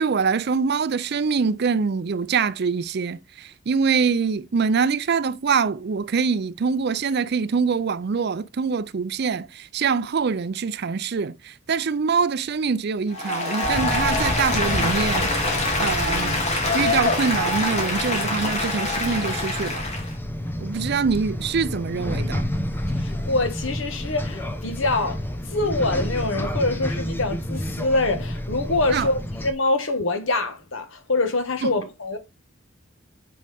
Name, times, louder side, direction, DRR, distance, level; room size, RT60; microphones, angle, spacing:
voice 1, 0.0-16.4 16.7-19.9 20.6-22.5 28.9-29.1 31.6-31.7, right 5 dB, 55° right, 0.5 m, -24 dB
Applause, 13.1-20.1, left 2 dB, 35° left, 2.6 m, -25 dB
sound 1, 13.6-29.5, equal, 10° left, 0.9 m, -30 dB
voice 2, 23.0-25.2 25.5-32.2, left 2 dB, 70° left, 1.5 m, -25 dB
8.6 x 5.2 x 3.5 m
head